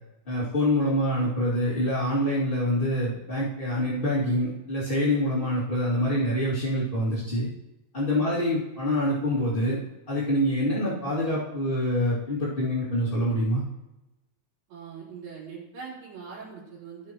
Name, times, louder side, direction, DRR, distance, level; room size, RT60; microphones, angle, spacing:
voice 1, 0.3-7.5 7.9-9.8 10.1-13.6, left 1 dB, 20° left, -10 dB, 1.8 m, -25 dB
voice 2, 8.1-8.4 14.7-17.1, right 6 dB, 85° right, -7 dB, 5.4 m, -42 dB
18.5 x 6.2 x 3.0 m, 0.98 s
omnidirectional pair, 4.3 m